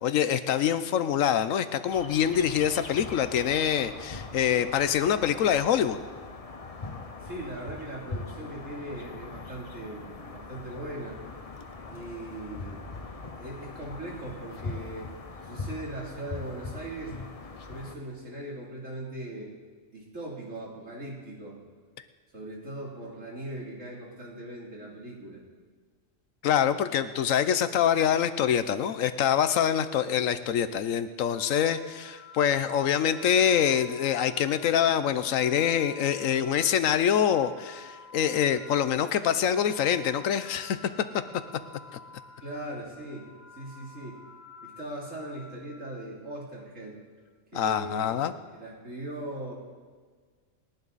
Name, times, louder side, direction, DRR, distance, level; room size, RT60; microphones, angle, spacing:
voice 1, 0.0-6.0 26.4-40.8 47.5-48.3, left 9 dB, 85° left, 11 dB, 1.1 m, -25 dB
sound 1, 1.9-18.0, left 3 dB, 30° left, 0.9 m, -41 dB
voice 2, 7.2-11.2 11.9-12.8 13.3-15.1 15.4-17.2 17.7-19.5 19.9-21.6 22.3-25.4 42.4-44.2 44.6-47.0 47.5-48.3 48.5-49.6, right 1 dB, 70° right, -3 dB, 3.5 m, -39 dB
sound 2, 31.2-46.4, left 4 dB, 20° right, 4.5 m, -50 dB
28.5 x 10.5 x 4.1 m, 1.5 s
omnidirectional pair, 1.4 m